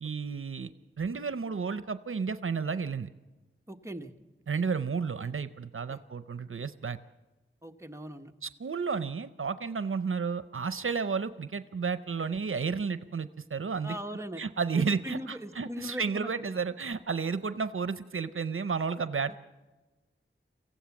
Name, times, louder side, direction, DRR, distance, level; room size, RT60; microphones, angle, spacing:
voice 1, 0.0-0.7 1.0-3.1 4.5-7.0 8.4-13.9 14.4-19.4, right 5 dB, 75° right, 13 dB, 0.6 m, -32 dB
voice 2, 3.7-4.1 5.9-6.0 7.6-8.3 13.8-14.4 14.7-16.6 19.3-19.4, equal, 15° right, 5 dB, 1.2 m, -40 dB
24.0 x 15.5 x 7.2 m, 1.2 s
wide cardioid pair, 50°, 21 cm